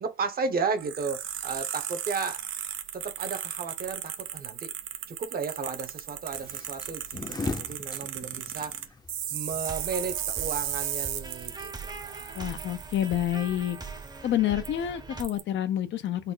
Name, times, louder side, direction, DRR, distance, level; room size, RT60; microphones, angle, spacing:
voice 1, 0.0-2.5 2.9-4.7 5.1-8.8 9.3-11.7 12.0-12.5, right 5 dB, 50° right, 0.9 m, -34 dB
sound 1, 0.8-14.2 14.7-14.8 15.2-15.4, right 11 dB, 80° right, 0.6 m, -36 dB
sound 2, 6.3-11.5, left 3 dB, 20° left, 0.6 m, -38 dB
sound 3, 9.6-15.2, right 3 dB, 20° right, 0.7 m, -41 dB
voice 2, 12.4-13.8 14.2-16.3, left 11 dB, 65° left, 0.6 m, -28 dB
4.1 x 2.1 x 3.8 m
cardioid pair, 90°, 20 cm